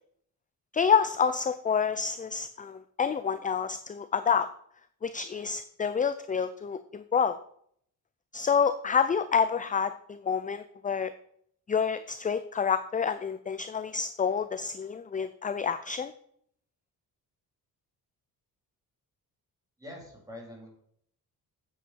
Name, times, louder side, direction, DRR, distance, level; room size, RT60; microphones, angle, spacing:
voice 1, 0.7-4.5 5.0-7.4 8.3-11.1 11.7-16.1, left 6 dB, 20° left, 12 dB, 0.4 m, -28 dB
voice 2, 19.8-20.7, left 1 dB, 10° right, -2 dB, 3.9 m, -44 dB
8.9 x 8.0 x 4.5 m, 0.66 s
cardioid pair, 105°, 39 cm